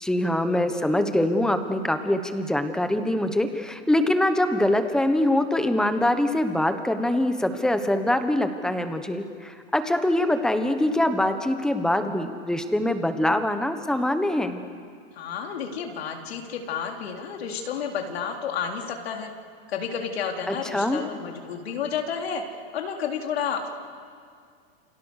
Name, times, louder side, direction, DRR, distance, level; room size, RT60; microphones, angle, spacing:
voice 1, 0.0-14.6 20.5-21.0, left 1 dB, ahead, 7 dB, 1.1 m, -24 dB
voice 2, 15.1-19.3 19.7-22.4 22.7-23.7, left 7 dB, 90° left, 2 dB, 3.9 m, -31 dB
29.5 x 29.0 x 6.5 m, 2.1 s
supercardioid pair, 165°, 30 cm